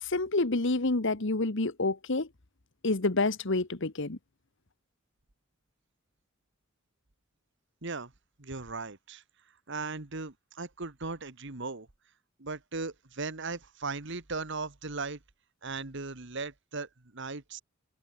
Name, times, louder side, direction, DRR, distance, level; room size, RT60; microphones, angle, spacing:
voice 1, 0.0-2.3 2.8-4.2, left 2 dB, 60° left, 1.4 m, -28 dB
voice 2, 7.8-8.1 8.4-9.2 9.7-11.9 12.4-15.2 15.6-17.6, right 3 dB, 60° right, 1.8 m, -37 dB
head